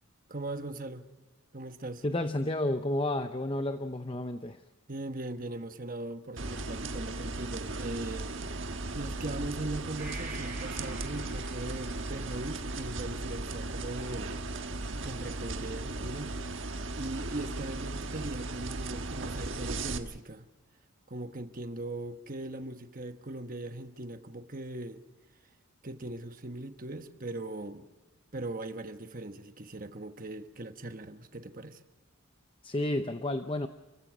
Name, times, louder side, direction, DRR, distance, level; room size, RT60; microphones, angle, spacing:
voice 1, 0.3-1.1 1.5-2.0 4.9-14.3 15.0-20.4 21.1-25.0 25.8-27.9 28.3-31.8, right 2 dB, 40° right, 1.2 m, -40 dB
voice 2, 2.0-4.6 32.6-33.7, left 1 dB, 25° left, 0.7 m, -31 dB
sound 1, 6.4-20.0, right 2 dB, 60° right, 1.4 m, -36 dB
Gong, 10.0-17.6 18.0-18.1, right 3 dB, 10° right, 7.4 m, -51 dB
29.5 x 15.5 x 6.2 m
head